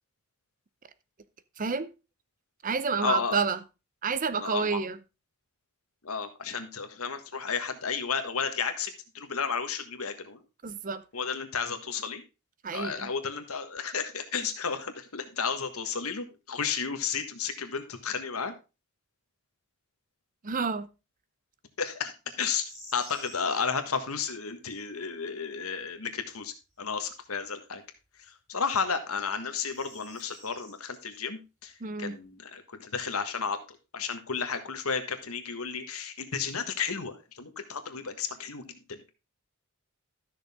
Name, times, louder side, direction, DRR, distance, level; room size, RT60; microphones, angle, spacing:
voice 1, 1.6-1.9 2.6-3.6 4.0-5.0 10.6-11.0 12.6-13.1 20.4-20.9 31.8-32.2, right 5 dB, 40° right, 0.6 m, -29 dB
voice 2, 3.0-3.4 4.4-4.8 6.0-10.4 11.1-12.2 12.7-18.5 21.8-27.8 28.2-39.1, left 6 dB, 80° left, 1.5 m, -33 dB
sound 1, 22.3-23.7 26.8-26.9 29.0-30.7, equal, 10° right, 4.4 m, -49 dB
12.5 x 6.5 x 3.5 m
head